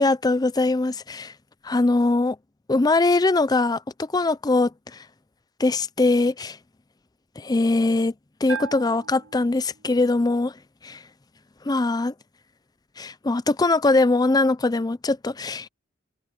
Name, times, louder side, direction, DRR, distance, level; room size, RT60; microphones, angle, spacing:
voice 1, 0.0-1.3 1.6-2.4 2.7-5.0 5.6-6.6 7.4-8.1 8.4-10.5 10.8-11.0 11.6-12.1 13.0-15.7, left 2 dB, 20° left, 0.5 m, -22 dB
Bell, 8.5-10.1, right 6 dB, 90° right, 5.1 m, -38 dB
head